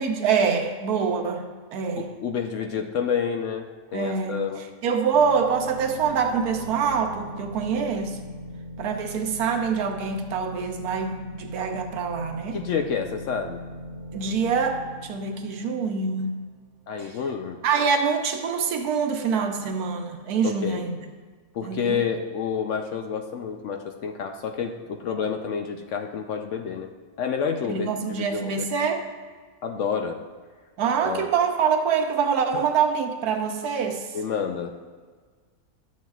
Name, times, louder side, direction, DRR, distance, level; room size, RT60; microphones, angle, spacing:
voice 1, 0.0-2.1 3.9-4.4 4.8-8.2 8.8-12.6 14.1-16.3 17.6-21.1 21.6-22.0 27.6-29.1 30.8-34.1, right 6 dB, 80° right, 4 dB, 1.3 m, -25 dB
voice 2, 2.0-4.6 12.5-13.6 16.9-17.6 20.4-20.8 21.5-26.9 27.2-28.7 29.6-30.2 31.0-31.3 32.5-32.6 34.1-34.7, left 6 dB, 65° left, 5 dB, 0.8 m, -29 dB
sound 1, 5.1-16.6, equal, 55° right, 0.9 m, -40 dB
11.5 x 7.5 x 2.3 m, 1.5 s
omnidirectional pair, 1.6 m